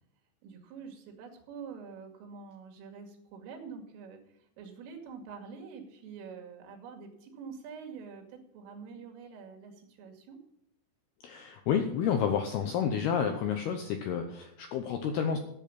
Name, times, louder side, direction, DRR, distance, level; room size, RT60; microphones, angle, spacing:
voice 1, 0.4-10.4, right 5 dB, 85° right, 2 dB, 4.8 m, -46 dB
voice 2, 11.2-15.4, left 7 dB, 75° left, 5 dB, 2.4 m, -30 dB
13.0 x 7.2 x 8.7 m, 0.75 s
omnidirectional pair, 5.7 m